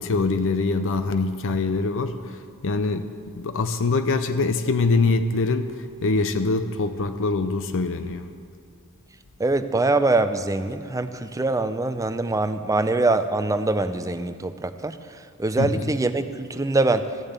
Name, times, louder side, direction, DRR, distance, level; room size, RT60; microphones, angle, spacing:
voice 1, 0.0-2.4 2.6-5.7 6.0-8.3 15.6-15.7, left 3 dB, 60° left, 10 dB, 0.6 m, -24 dB
voice 2, 9.4-15.0 15.4-17.1, right 2 dB, 15° right, 10 dB, 0.5 m, -23 dB
14.5 x 7.0 x 8.1 m, 2.3 s
head